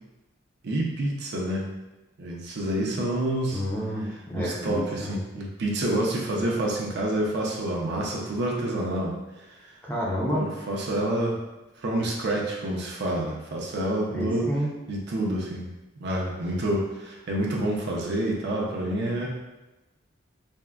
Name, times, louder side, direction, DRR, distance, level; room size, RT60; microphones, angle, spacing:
voice 1, 0.6-1.7 2.2-3.6 4.4-9.7 10.3-11.4 11.8-14.5 14.9-15.7 16.0-19.3, right 1 dB, 60° right, -2 dB, 0.5 m, -28 dB
voice 2, 3.5-5.2 9.8-10.5 14.1-14.7, equal, 10° left, -5 dB, 0.5 m, -29 dB
3.4 x 2.1 x 2.2 m, 1.0 s
head